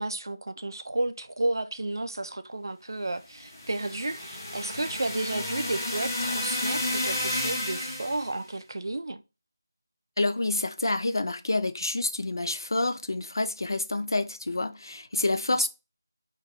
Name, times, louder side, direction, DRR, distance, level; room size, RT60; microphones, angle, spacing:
voice 1, 0.0-9.2 15.5-15.7, right 2 dB, 90° right, 0.3 m, -32 dB
sound 1, 3.4-8.3, left 1 dB, 35° left, 0.9 m, -31 dB
voice 2, 10.2-15.7, left 2 dB, 75° left, 0.4 m, -28 dB
2.6 x 2.3 x 3.8 m
figure-of-eight pair, 180°, 2 cm